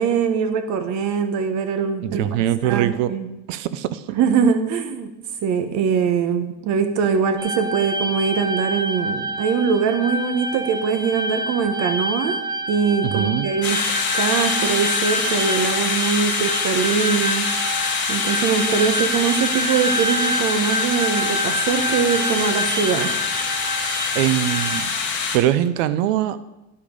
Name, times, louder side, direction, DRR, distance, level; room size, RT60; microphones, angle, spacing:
voice 1, 0.0-2.2 2.6-3.3 4.1-5.1 5.4-12.4 12.7-17.5 18.1-23.1, right 6 dB, 45° right, 8 dB, 1.2 m, -22 dB
voice 2, 2.0-3.1 3.5-4.2 13.0-13.5 24.1-25.0 25.3-26.4, right 12 dB, 75° right, 14 dB, 0.7 m, -22 dB
sound 1, 7.4-24.9, right 1 dB, 10° right, 0.6 m, -28 dB
sound 2, 13.6-25.4, left 5 dB, 30° left, 1.6 m, -25 dB
10.5 x 5.0 x 5.3 m, 0.95 s
supercardioid pair, 140°, 38 cm